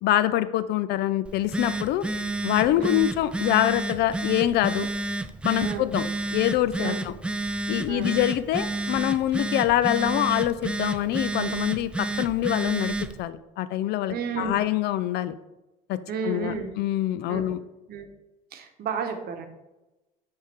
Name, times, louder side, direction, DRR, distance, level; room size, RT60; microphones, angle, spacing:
voice 1, 0.0-2.0 2.4-4.9 5.4-6.1 6.3-7.1 7.7-15.3 15.9-16.0 16.2-17.6, left 13 dB, 60° left, 14 dB, 0.4 m, -25 dB
Telephone, 1.2-13.2, right 2 dB, 5° right, 0.3 m, -30 dB
voice 2, 14.1-14.6 16.1-16.7 17.3-17.5 17.9-18.1 18.5-19.5, right 5 dB, 55° right, 6 dB, 1.1 m, -32 dB
9.6 x 3.5 x 3.5 m, 1.0 s
supercardioid pair, 90°, 19 cm